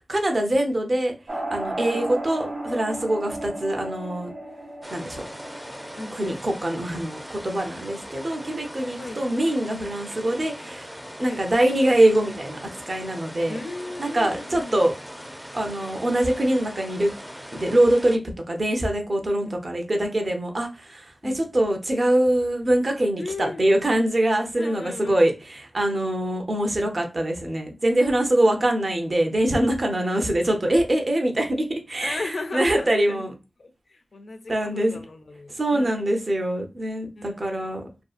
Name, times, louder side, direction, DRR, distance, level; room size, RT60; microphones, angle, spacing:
voice 1, 0.1-4.3 4.9-5.3 6.1-10.9 11.2-13.6 14.0-14.9 15.5-17.1 17.5-18.2 18.5-33.3 34.5-35.0 35.5-37.8, right 1 dB, 50° right, 0.6 m, -23 dB
sound 1, 1.3-6.5, right 1 dB, 85° right, 1.0 m, -34 dB
sound 2, 4.8-18.2, equal, 5° right, 0.4 m, -40 dB
voice 2, 6.0-6.4 9.0-9.2 11.2-11.4 13.5-14.8 19.4-19.6 21.2-21.4 23.2-23.6 24.6-25.2 28.0-28.7 30.0-30.1 32.0-33.3 33.6-36.0 37.2-37.7, left 3 dB, 70° left, 0.4 m, -37 dB
2.6 x 2.3 x 2.4 m
wide cardioid pair, 65°, 0 cm